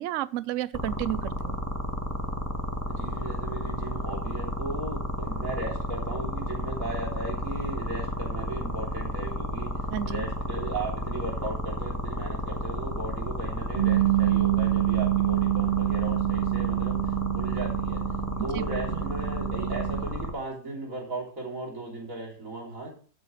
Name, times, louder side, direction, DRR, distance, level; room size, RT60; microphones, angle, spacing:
voice 1, 0.0-1.6 9.9-10.3 18.4-18.6 18.9-19.0, right 13 dB, 80° right, 0.6 m, -32 dB
sound 1, 0.7-20.3, equal, 10° left, 1.3 m, -32 dB
voice 2, 2.9-18.0 18.4-22.9, right 2 dB, 45° right, 3.8 m, -36 dB
Bass guitar, 13.8-20.0, right 16 dB, 25° right, 2.4 m, -26 dB
12.5 x 8.2 x 3.2 m
omnidirectional pair, 1.9 m